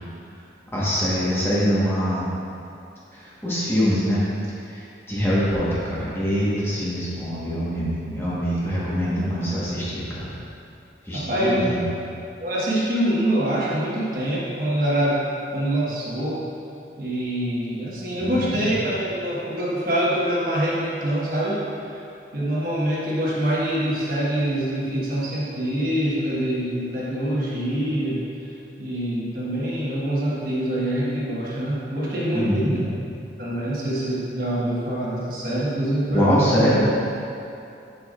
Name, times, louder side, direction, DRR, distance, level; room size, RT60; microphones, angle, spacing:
voice 1, 0.7-2.3 3.1-4.2 4.6-10.3 11.0-11.8 18.2-18.7 32.3-32.9 36.1-36.8, equal, 15° left, -9 dB, 1.3 m, -24 dB
voice 2, 11.1-11.5 12.4-15.2 15.5-16.4 17.0-21.6 22.3-28.2 28.8-32.8 33.4-36.5, right 1 dB, 55° right, -7 dB, 1.3 m, -25 dB
7.2 x 7.0 x 2.5 m, 2.7 s
head